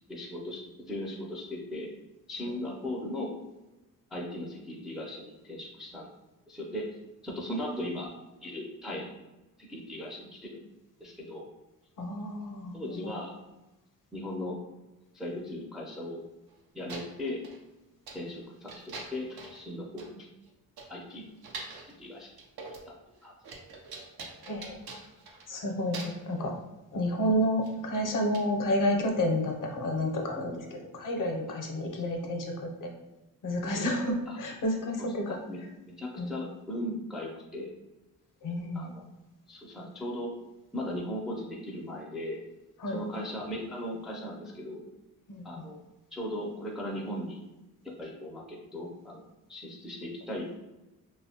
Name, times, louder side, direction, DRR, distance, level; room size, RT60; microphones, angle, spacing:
voice 1, 0.1-1.9 2.3-3.4 4.1-6.1 6.5-7.0 7.2-8.1 8.4-9.2 9.6-10.6 11.0-11.5 12.7-13.3 14.1-14.6 15.1-16.2 16.7-17.4 18.1-20.3 20.9-21.3 21.8-22.3 22.9-23.0 23.2-23.3 34.3-34.4 35.0-37.7 38.7-39.0 39.5-40.3 40.7-42.4 42.9-44.9 45.4-45.8 46.1-47.4 48.0-50.6, left 1 dB, ahead, -2 dB, 0.3 m, -38 dB
voice 2, 12.0-13.1 24.5-24.8 25.5-26.5 26.9-30.7 30.9-32.5 32.8-32.9 33.4-35.4 36.2-36.3 38.4-38.9 42.8-43.0 45.3-45.4, left 1 dB, 60° left, 2 dB, 0.6 m, -30 dB
sound 1, 16.5-16.6 16.9-17.6 18.1-18.3 18.7-19.7 20.0-20.1 20.5-20.6 20.8-21.9 22.4-22.9 23.2-25.6 25.9-26.3 27.6-27.8 28.3-28.4, right 3 dB, 85° right, 0.6 m, -44 dB
2.9 x 2.1 x 2.7 m, 1.0 s
wide cardioid pair, 125°, 36 cm